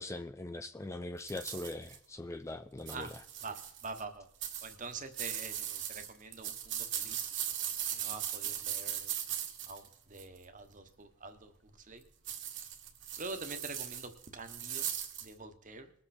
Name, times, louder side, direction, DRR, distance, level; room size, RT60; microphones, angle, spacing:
voice 1, 0.0-3.1, left 2 dB, 15° left, 9 dB, 0.4 m, -41 dB
sound 1, 1.3-2.0 2.8-4.0 4.4-10.4 12.3-15.3, right 10 dB, 55° right, 1.7 m, -39 dB
voice 2, 3.4-4.3 4.6-7.3 7.9-9.1 9.7-11.5 11.8-12.0 13.2-14.9 15.2-15.9, right 3 dB, 35° right, 7 dB, 1.2 m, -45 dB
21.0 x 7.8 x 4.3 m, 0.69 s
head